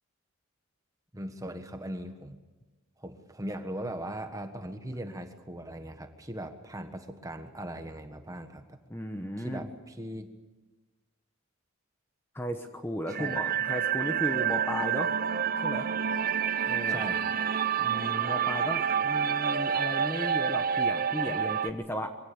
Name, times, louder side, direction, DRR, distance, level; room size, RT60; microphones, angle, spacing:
voice 1, 1.1-2.4 3.0-8.8 9.4-10.4 13.1-13.4 16.9-17.3, right 1 dB, 15° right, 7 dB, 1.4 m, -39 dB
voice 2, 8.9-9.7 12.3-15.1 15.6-15.9 16.7-17.0 17.8-22.2, left 1 dB, 10° left, 5 dB, 1.1 m, -35 dB
sound 1, 13.1-21.7, right 7 dB, 40° right, 0.7 m, -28 dB
23.5 x 17.0 x 8.5 m, 1.2 s
head